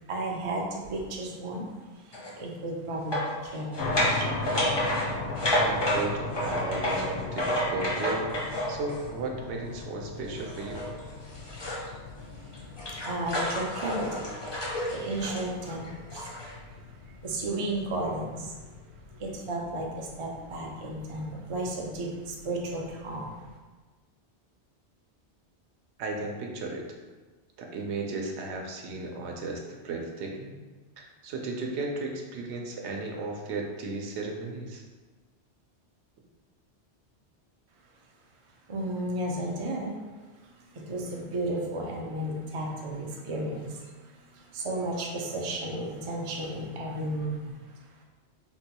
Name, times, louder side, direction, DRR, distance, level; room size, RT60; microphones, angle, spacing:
voice 1, 0.1-1.7 2.0-4.7 12.2-12.5 12.9-16.8 17.2-18.7 19.2-23.3 38.7-40.1 40.4-47.6, right 1 dB, 50° right, -1 dB, 0.4 m, -34 dB
sound 1, 2.1-2.3 3.1-9.1 10.3-11.9 12.3-16.5, equal, 35° left, 0.4 m, -30 dB
sound 2, 3.8-23.5, left 3 dB, 75° left, 0.8 m, -40 dB
voice 2, 5.6-8.3 8.7-10.9 26.0-26.8 27.6-30.5 31.0-34.8, right 3 dB, 80° right, 1 dB, 0.9 m, -35 dB
3.7 x 2.2 x 2.8 m, 1.3 s
omnidirectional pair, 1.1 m